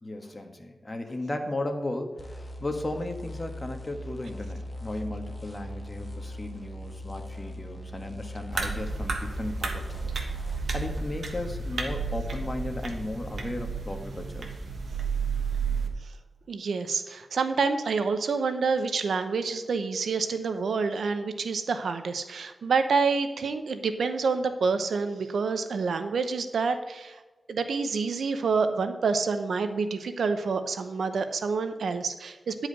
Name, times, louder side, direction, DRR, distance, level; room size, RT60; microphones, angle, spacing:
voice 1, 0.0-10.2 10.7-14.6, left 1 dB, 30° left, 5 dB, 1.5 m, -35 dB
sound 1, 2.2-11.1, left 1 dB, 15° left, 1.9 m, -40 dB
sound 2, 8.5-15.9, right 4 dB, 70° right, 1.3 m, -32 dB
voice 2, 16.5-27.2 27.5-32.7, right 4 dB, 90° right, 9 dB, 0.8 m, -28 dB
10.5 x 4.9 x 6.5 m, 1.2 s
cardioid pair, 65°, 0 cm